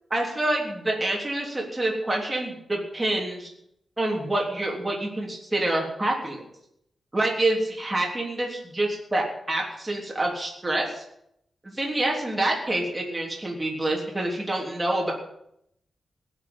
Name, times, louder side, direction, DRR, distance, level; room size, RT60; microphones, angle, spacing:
voice 1, 0.1-3.5 4.0-6.4 7.1-11.0 11.6-15.1, right 1 dB, 15° right, -2 dB, 3.6 m, -27 dB
18.0 x 7.3 x 9.0 m, 0.75 s
wide cardioid pair, 175°, 0 cm